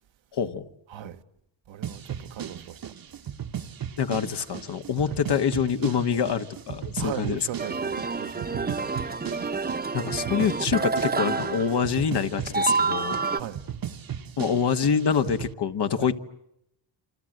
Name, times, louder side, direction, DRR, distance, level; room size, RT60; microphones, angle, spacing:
voice 1, 0.3-0.7 4.0-7.4 9.9-13.2 14.4-16.2, left 7 dB, 60° left, 1.6 m, -26 dB
voice 2, 0.9-1.2 1.7-2.8 7.0-8.9 13.3-13.6 16.0-16.1, right 11 dB, 80° right, 1.3 m, -38 dB
sound 1, 1.8-15.5, right 9 dB, 50° right, 1.2 m, -37 dB
sound 2, 7.6-12.2 12.5-13.4, right 4 dB, 20° right, 1.0 m, -28 dB
28.5 x 26.5 x 7.9 m
cardioid pair, 85°, 45 cm